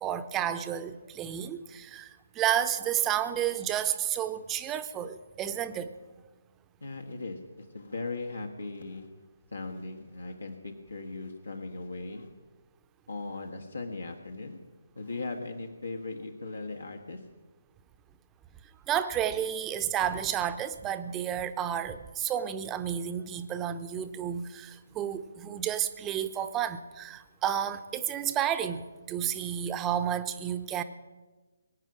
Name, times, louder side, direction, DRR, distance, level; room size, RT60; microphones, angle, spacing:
voice 1, 0.0-2.1 2.3-6.0 18.9-30.8, right 10 dB, 15° right, 10 dB, 0.8 m, -31 dB
voice 2, 6.8-9.1 9.5-12.3 13.1-14.6 14.9-17.2, left 3 dB, 75° left, 3 dB, 1.6 m, -38 dB
23.0 x 9.4 x 6.1 m, 1.3 s
figure-of-eight pair, 140°, 0 cm